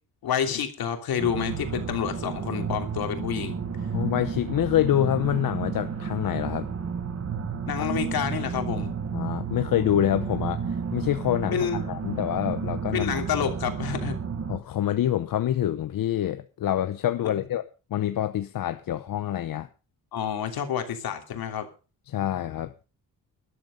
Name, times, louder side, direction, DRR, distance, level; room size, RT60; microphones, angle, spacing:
voice 1, 0.2-3.6 7.7-8.9 11.5-11.8 12.9-14.2 20.1-21.7, left 8 dB, 80° left, 3.0 m, -28 dB
sound 1, 1.2-14.6, right 6 dB, 45° right, 1.9 m, -32 dB
voice 2, 3.9-6.7 7.8-7.9 9.1-13.1 14.5-17.6 17.9-19.7 22.1-22.7, left 11 dB, 65° left, 0.9 m, -26 dB
13.0 x 11.5 x 5.3 m
wide cardioid pair, 165°, 36 cm